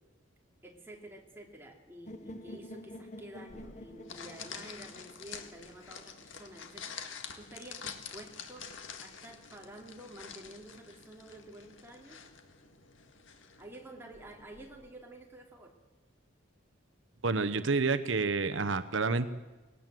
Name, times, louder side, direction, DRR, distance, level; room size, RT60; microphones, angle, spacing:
voice 1, 0.6-7.0 7.3-8.7 9.0-12.2 13.6-15.7, right 1 dB, 10° right, 0 dB, 3.1 m, -50 dB
sound 1, 2.1-6.0, left 1 dB, 35° left, 1.2 m, -48 dB
sound 2, 3.5-14.9, left 6 dB, 80° left, 1.9 m, -48 dB
voice 2, 17.2-19.3, right 4 dB, 80° right, 10 dB, 0.9 m, -29 dB
20.0 x 18.0 x 7.7 m, 1.2 s
head